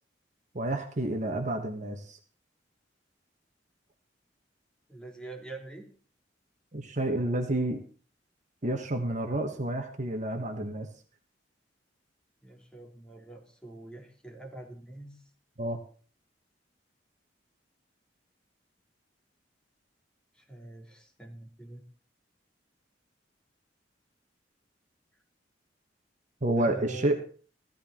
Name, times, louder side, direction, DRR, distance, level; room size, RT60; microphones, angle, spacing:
voice 1, 0.5-2.2 6.7-7.8 8.6-10.9 15.6-15.8 26.4-27.2, right 1 dB, 40° right, 5 dB, 1.4 m, -29 dB
voice 2, 4.9-5.9 12.4-15.2 20.3-21.8 26.6-27.2, right 2 dB, 5° left, 0 dB, 3.0 m, -44 dB
16.0 x 13.5 x 4.4 m, 0.42 s
head